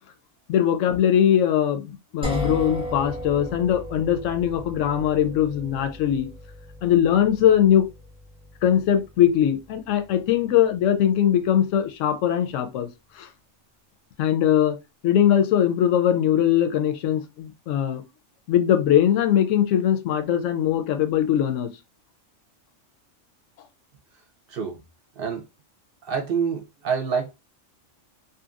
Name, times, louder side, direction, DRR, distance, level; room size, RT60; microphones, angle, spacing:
voice 1, 0.5-6.3 6.8-7.9 8.6-12.9 13.2-13.3 14.2-14.8 15.0-18.0 18.5-21.7, left 10 dB, 75° left, 0.9 m, -21 dB
sound 1, 2.2-12.0, equal, 5° right, 0.6 m, -37 dB
voice 2, 24.5-24.8 25.2-25.4 26.0-27.3, right 6 dB, 55° right, 0.8 m, -27 dB
2.8 x 2.5 x 2.4 m
omnidirectional pair, 1.3 m